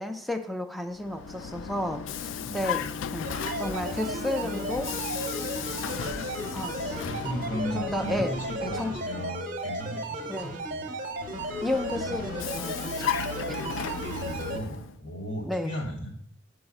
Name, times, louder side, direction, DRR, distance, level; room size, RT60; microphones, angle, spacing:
voice 1, 0.0-3.3 3.6-4.9 6.5-6.8 7.7-8.9 10.3-10.6 11.6-13.1 13.5-13.7 15.5-15.9, left 1 dB, ahead, 7 dB, 0.4 m, -32 dB
Vehicle, 0.9-9.4 11.1-15.0, left 7 dB, 80° left, 0.3 m, -35 dB
sound 1, 3.2-14.6, right 2 dB, 40° right, 0.8 m, -35 dB
voice 2, 6.8-10.8 11.9-12.1 13.7-16.1, equal, 65° left, 0 dB, 2.0 m, -37 dB
6.9 x 4.8 x 5.3 m, 0.69 s
head